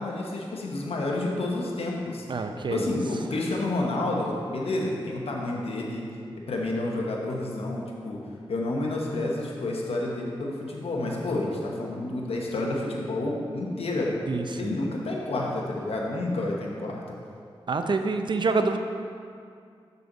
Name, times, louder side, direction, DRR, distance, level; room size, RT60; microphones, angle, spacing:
voice 1, 0.0-2.3 2.7-6.1 6.3-8.2 8.5-14.1 14.6-17.0, left 2 dB, 80° left, -1 dB, 1.1 m, -29 dB
voice 2, 2.3-2.9 14.3-14.7 17.7-18.8, right 3 dB, 50° right, 7 dB, 0.6 m, -27 dB
6.8 x 6.7 x 4.0 m, 2.3 s
cardioid pair, 55°, 10 cm